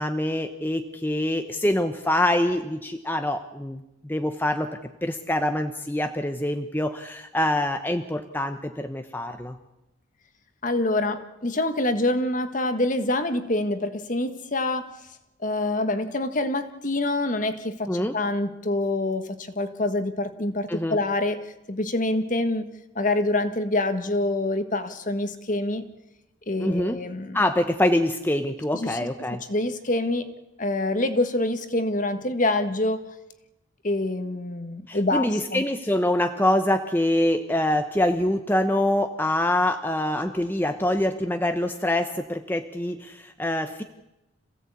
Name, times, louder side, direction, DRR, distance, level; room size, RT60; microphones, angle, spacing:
voice 1, 0.0-4.7 5.0-9.6 17.9-18.2 20.7-21.0 26.6-27.0 27.3-29.4 34.9-43.8, left 1 dB, 10° left, 7 dB, 0.9 m, -25 dB
voice 2, 10.6-15.0 15.4-22.7 22.9-25.8 26.5-27.4 28.7-33.1 33.8-35.6, left 2 dB, 40° left, 9 dB, 1.6 m, -26 dB
27.0 x 16.5 x 8.4 m, 0.96 s
head